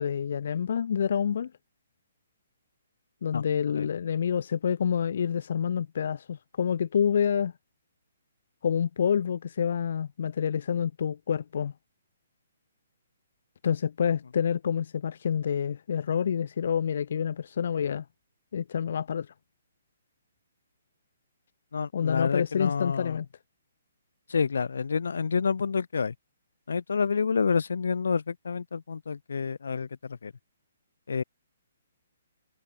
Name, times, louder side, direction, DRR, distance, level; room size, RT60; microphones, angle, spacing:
voice 1, 0.0-1.5 3.2-7.5 8.6-11.7 13.6-18.0 18.5-19.3 21.9-23.3, left 7 dB, 55° left, 3.7 m, -28 dB
voice 2, 21.7-23.2 24.3-26.1 26.7-30.3 31.1-31.2, left 5 dB, 90° left, 7.7 m, -28 dB
hypercardioid pair, 170°, 0 cm